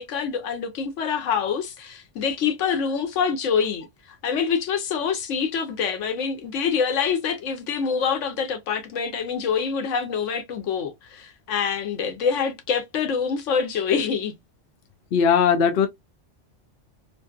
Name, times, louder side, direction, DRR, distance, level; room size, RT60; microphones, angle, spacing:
voice 1, 0.0-3.9 4.2-14.3, left 6 dB, 90° left, 1.0 m, -25 dB
voice 2, 15.1-15.9, left 7 dB, 60° left, 0.7 m, -18 dB
2.6 x 2.5 x 2.3 m
omnidirectional pair, 1.2 m